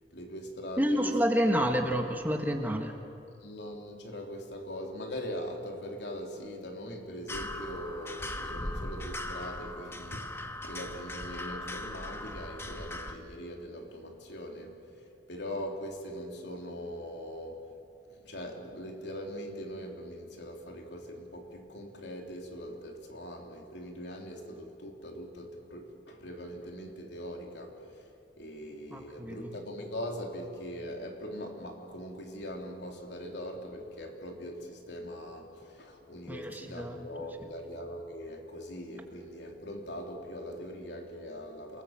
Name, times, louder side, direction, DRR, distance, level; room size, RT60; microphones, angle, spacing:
voice 1, 0.1-1.7 3.4-17.7 18.1-28.1 28.4-41.8, equal, 75° left, 2 dB, 3.3 m, -41 dB
voice 2, 0.8-2.9 28.9-29.5 36.3-36.9, equal, 10° right, 3 dB, 1.6 m, -29 dB
sound 1, 7.3-13.1, left 1 dB, 15° left, 1.2 m, -39 dB
28.5 x 19.5 x 7.7 m, 2.5 s
head